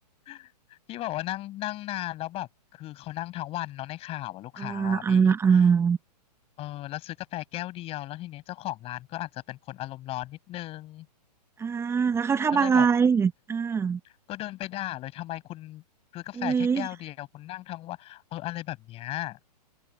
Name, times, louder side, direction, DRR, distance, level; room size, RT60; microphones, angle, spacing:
voice 1, 0.3-5.6 6.6-11.1 12.5-12.9 14.3-15.8 16.1-19.4, left 15 dB, 25° left, 7.9 m, -36 dB
voice 2, 4.6-6.0 11.6-14.0 16.4-16.9, right 6 dB, 10° right, 1.3 m, -23 dB
hypercardioid pair, 135°, 21 cm